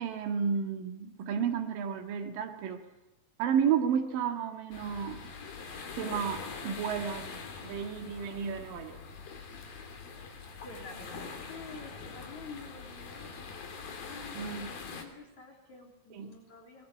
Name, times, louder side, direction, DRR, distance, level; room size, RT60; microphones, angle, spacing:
voice 1, 0.0-2.8 3.4-5.2 5.7-7.3 7.6-9.0 14.4-14.7 16.1-16.3, right 7 dB, 70° right, 4 dB, 3.5 m, -32 dB
sound 1, 4.7-15.0, left 5 dB, 75° left, 4.7 m, -43 dB
voice 2, 10.6-16.8, left 3 dB, 55° left, 2 dB, 4.5 m, -49 dB
23.0 x 21.0 x 8.5 m, 0.95 s
omnidirectional pair, 4.1 m